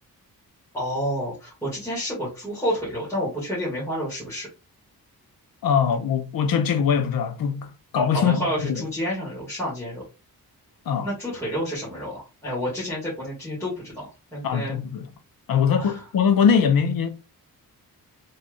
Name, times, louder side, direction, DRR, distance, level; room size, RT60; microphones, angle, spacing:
voice 1, 0.7-4.5 8.1-10.0 11.0-14.8 15.7-16.0, equal, 5° left, 1.6 m, -29 dB
voice 2, 5.6-7.7 7.9-8.8 10.9-11.1 14.4-15.1 15.5-17.1, left 7 dB, 65° left, 0.7 m, -22 dB
4.1 x 3.3 x 2.3 m
wide cardioid pair, 180°, 37 cm